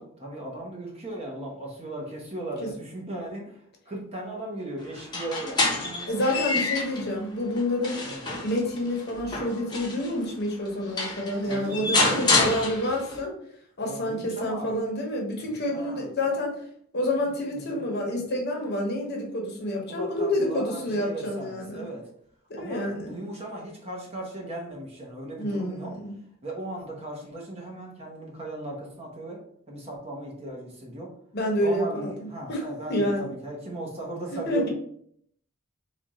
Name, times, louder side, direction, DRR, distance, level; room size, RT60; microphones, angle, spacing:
voice 1, 0.0-6.1 6.4-6.6 8.0-8.2 11.5-12.6 13.8-14.8 15.7-16.1 17.5-17.8 19.9-22.1 22.6-26.0 26.4-29.4 29.7-31.1 31.6-34.7, right 1 dB, 30° right, -2 dB, 1.0 m, -37 dB
sound 1, 5.0-7.1 7.6-10.1 10.7-10.8 11.0-13.2, left 3 dB, 20° left, 0.8 m, -27 dB
voice 2, 6.1-8.0 8.4-13.3 13.8-16.5 16.9-21.9 22.5-23.1 25.4-26.1 31.3-32.1 32.5-32.6 32.9-33.3 34.5-34.7, left 1 dB, 55° left, 0 dB, 0.9 m, -28 dB
3.4 x 2.4 x 4.2 m, 0.67 s
head